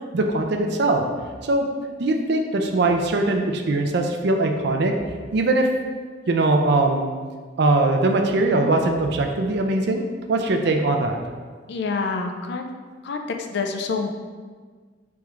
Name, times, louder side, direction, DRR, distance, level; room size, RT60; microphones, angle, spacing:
voice 1, 0.1-1.0 1.4-1.7 2.0-4.9 5.3-5.7 6.3-7.1 7.6-11.2, right 2 dB, 65° right, 4 dB, 0.5 m, -21 dB
voice 2, 11.7-12.7 13.0-13.2 13.5-14.1, left 4 dB, 65° left, 4 dB, 0.4 m, -27 dB
3.5 x 3.1 x 4.7 m, 1.5 s
head